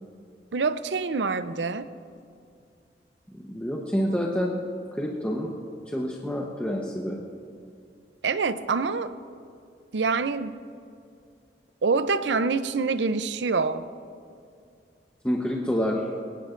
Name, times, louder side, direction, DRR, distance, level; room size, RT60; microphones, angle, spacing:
voice 1, 0.5-1.9 8.2-9.1 9.9-10.6 11.8-13.9, right 4 dB, 80° right, 13 dB, 0.6 m, -26 dB
voice 2, 3.3-4.6 4.9-5.5 5.9-7.2 15.2-16.1, equal, 5° left, -2 dB, 0.9 m, -28 dB
19.0 x 18.0 x 2.6 m, 2.4 s
head